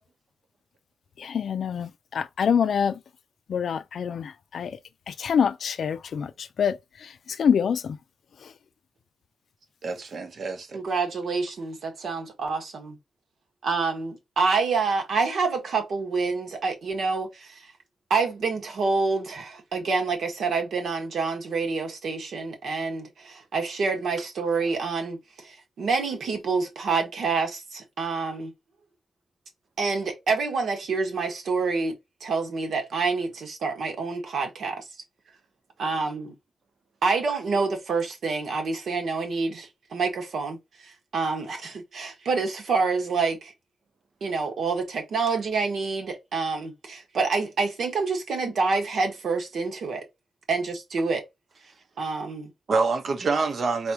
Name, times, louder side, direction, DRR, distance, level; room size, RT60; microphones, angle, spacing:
voice 1, 1.2-3.0 3.5-4.8 5.1-8.0 8.4-8.5, left 7 dB, 70° left, 0.4 m, -26 dB
voice 2, 9.8-10.8 52.7-53.9, right 4 dB, 55° right, 1.0 m, -26 dB
voice 3, 10.7-13.0 13.6-17.7 18.1-28.5 29.8-31.9 32.2-34.8 35.8-36.3 37.0-40.6 40.8-43.5 44.2-50.0 50.5-51.2 52.0-52.5, right 4 dB, 70° right, 1.5 m, -27 dB
4.2 x 3.4 x 2.9 m
wide cardioid pair, 140°, 0 cm